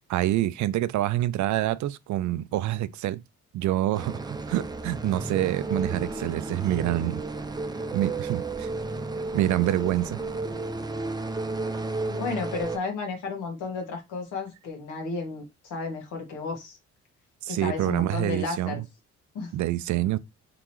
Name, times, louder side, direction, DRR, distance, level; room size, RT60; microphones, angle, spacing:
voice 1, 0.1-3.2 3.5-7.2 7.9-8.7 9.3-10.2 17.4-18.8 19.5-20.2, right 14 dB, 70° right, 0.5 m, -26 dB
sound 1, 3.9-12.8, right 3 dB, 15° right, 0.5 m, -33 dB
voice 2, 12.1-16.8 17.5-18.8 19.3-19.5, left 4 dB, 90° left, 1.7 m, -33 dB
3.8 x 3.8 x 3.0 m
cardioid pair, 90°, 30 cm